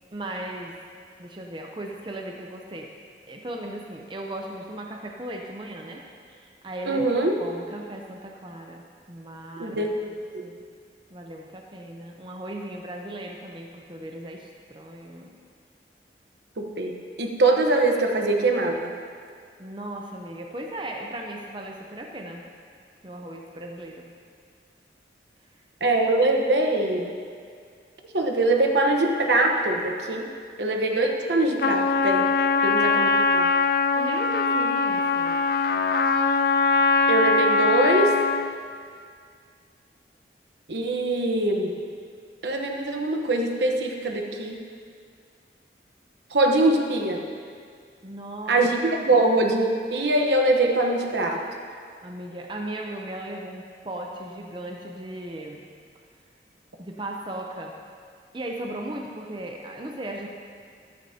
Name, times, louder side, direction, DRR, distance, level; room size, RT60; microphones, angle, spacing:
voice 1, 0.1-0.8 1.2-2.9 3.3-7.1 7.4-8.8 9.1-10.1 10.4-10.6 11.1-15.4 19.6-22.4 23.0-24.1 34.0-35.4 48.0-48.6 49.1-49.4 52.0-55.6 56.8-57.8 58.3-60.3, right 1 dB, 25° right, 1 dB, 0.7 m, -37 dB
voice 2, 6.9-7.3 9.6-10.1 16.6-18.9 25.8-27.1 28.1-30.3 30.6-32.3 32.6-33.4 37.1-38.1 40.7-41.7 42.4-44.6 46.3-47.2 48.5-51.4, right 2 dB, 80° right, 2 dB, 1.1 m, -23 dB
Trumpet, 31.6-38.5, left 4 dB, 55° left, 0.4 m, -22 dB
14.0 x 12.5 x 2.9 m, 2.1 s
head